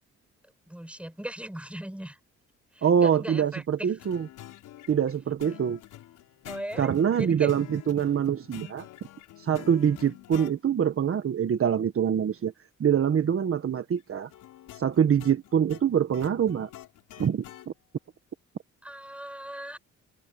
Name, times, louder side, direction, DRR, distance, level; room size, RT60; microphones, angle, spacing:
voice 1, 0.7-2.2 2.7-3.9 6.5-7.5 18.8-19.8, right 1 dB, 5° right, 5.3 m, -38 dB
voice 2, 2.8-4.3 4.9-5.8 6.8-8.9 9.4-12.5 12.8-14.3 14.7-16.7 17.2-17.4, right 8 dB, 45° right, 1.6 m, -24 dB
sound 1, 4.0-10.6 14.3-17.7, left 14 dB, 85° left, 4.6 m, -47 dB
open air
cardioid pair, 90°, 30 cm